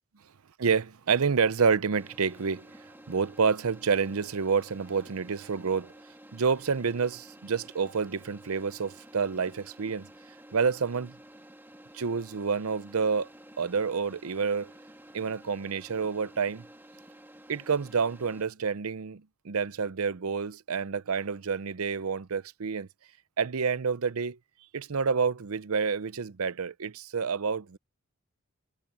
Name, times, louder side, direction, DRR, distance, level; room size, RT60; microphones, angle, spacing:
voice 1, 0.6-2.7 3.1-5.9 6.3-10.1 10.5-11.1 11.9-13.3 13.6-14.7 15.1-16.6 17.5-22.9 23.4-24.4 24.7-27.8, right 5 dB, 80° right, 0.6 m, -28 dB
sound 1, 1.9-18.4, right 1 dB, 10° right, 2.1 m, -52 dB
head